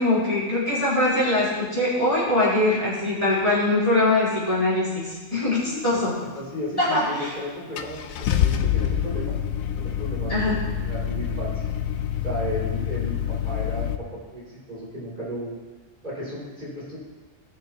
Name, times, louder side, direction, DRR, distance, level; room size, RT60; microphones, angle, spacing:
voice 1, 0.0-6.1 6.8-7.3 10.3-10.6, left 2 dB, 25° left, -10 dB, 3.8 m, -22 dB
voice 2, 5.4-5.8 6.3-9.3 9.8-10.6 10.8-11.7 12.2-13.2 13.4-15.5 16.0-17.0, equal, 35° right, -8 dB, 3.3 m, -34 dB
Car / Engine starting, 7.0-7.1 7.8-13.9, left 10 dB, 80° left, 1.1 m, -26 dB
18.5 x 6.5 x 3.0 m, 1.3 s
omnidirectional pair, 1.4 m